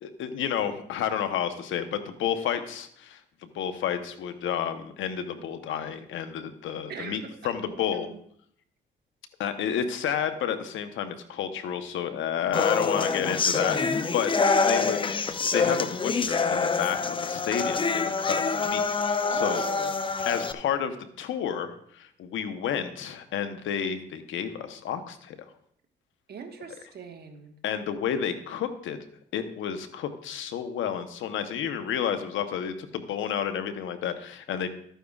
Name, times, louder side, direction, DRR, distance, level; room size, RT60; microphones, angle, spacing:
voice 1, 0.0-8.1 9.4-14.3 14.6-15.0 15.5-19.6 20.3-20.9 21.2-25.4 27.6-29.0 29.3-34.7, left 8 dB, 80° left, 9 dB, 0.9 m, -31 dB
voice 2, 6.9-8.2 14.7-15.2 19.2-19.9 26.3-27.5, right 6 dB, 55° right, 4 dB, 1.4 m, -40 dB
sound 1, 12.5-20.5, left 4 dB, 25° left, 0.5 m, -26 dB
13.0 x 9.2 x 2.4 m, 0.66 s
cardioid pair, 90°, 20 cm